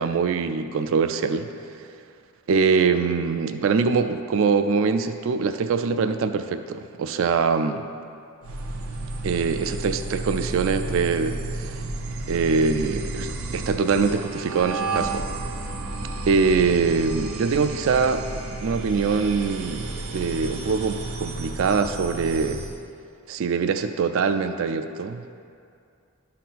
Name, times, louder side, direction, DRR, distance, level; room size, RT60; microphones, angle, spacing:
voice 1, 0.0-1.5 2.5-7.8 9.2-11.8 12.3-15.2 16.3-18.2 18.6-22.6 23.3-25.4, right 5 dB, 60° right, 9 dB, 0.3 m, -23 dB
sound 1, 8.4-22.8, right 2 dB, 85° right, 0.7 m, -32 dB
12.0 x 4.1 x 4.1 m, 2.4 s
head